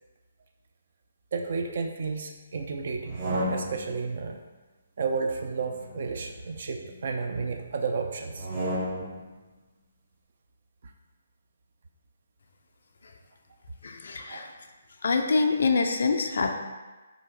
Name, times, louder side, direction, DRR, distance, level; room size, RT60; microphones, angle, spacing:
voice 1, 1.3-4.4 5.0-8.5 10.8-10.9 14.2-14.5, right 4 dB, 55° right, 4 dB, 0.3 m, -32 dB
sound 1, 2.9-4.0 5.3-6.9 8.3-9.3, equal, 35° right, 0.8 m, -33 dB
voice 2, 13.8-14.5 15.0-16.5, left 4 dB, 65° left, 4 dB, 0.3 m, -25 dB
2.8 x 2.5 x 3.7 m, 1.2 s
figure-of-eight pair, 145°, 0 cm